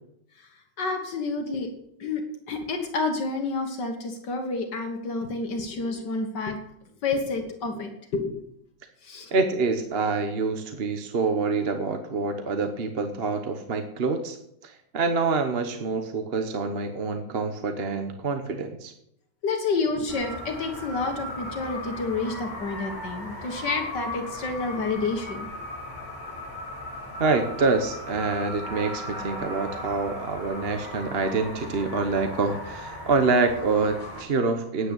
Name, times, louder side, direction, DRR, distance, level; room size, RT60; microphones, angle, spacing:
voice 1, 0.8-1.7 2.0-6.6 7.0-8.4 9.0-9.3 19.4-25.5, left 3 dB, 75° left, 4 dB, 2.0 m, -29 dB
voice 2, 9.3-14.4 14.6-18.9 27.2-34.9, right 4 dB, 40° right, 6 dB, 1.1 m, -26 dB
sound 1, 20.1-34.2, left 1 dB, 25° left, 4.9 m, -37 dB
9.7 x 9.1 x 8.2 m, 0.76 s
omnidirectional pair, 1.9 m